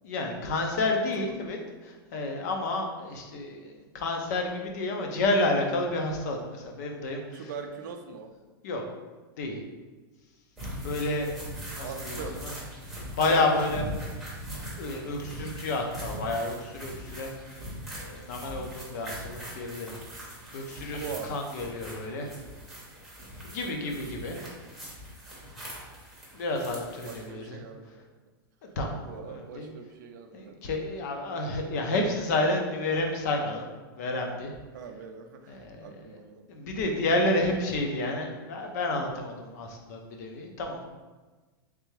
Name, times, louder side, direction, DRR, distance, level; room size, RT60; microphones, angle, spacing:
voice 1, 0.0-1.6 1.8-7.5 8.6-8.8 9.4-9.6 10.8-11.3 11.7-12.2 12.4-12.5 13.2-13.8 14.7-17.3 17.9-19.9 20.5-22.3 23.4-24.4 26.3-27.6 28.6-29.7 30.3-33.6 34.0-34.5 35.5-36.2 36.5-40.8, left 2 dB, 45° left, 2 dB, 0.6 m, -30 dB
voice 2, 7.3-8.3 11.8-12.4 13.3-13.8 20.9-21.3 27.0-28.0 29.0-30.9 34.7-36.5, right 5 dB, 50° right, 5 dB, 0.4 m, -41 dB
sound 1, 10.6-27.3, equal, ahead, 0.8 m, -41 dB
3.4 x 3.3 x 3.2 m, 1.3 s
supercardioid pair, 175°, 12 cm